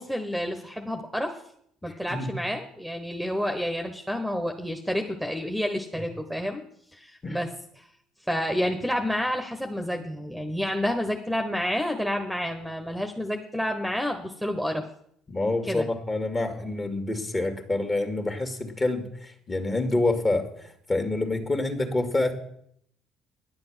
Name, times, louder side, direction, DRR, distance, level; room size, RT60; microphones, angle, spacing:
voice 1, 0.0-1.4 1.8-6.6 6.9-7.5 7.8-7.9 8.3-14.8 15.6-15.9, equal, ahead, 5 dB, 1.2 m, -29 dB
voice 2, 1.8-2.3 7.2-7.4 15.3-22.3, left 2 dB, 30° left, 6 dB, 2.1 m, -27 dB
10.5 x 7.7 x 6.3 m, 0.68 s
hypercardioid pair, 60°, 0 cm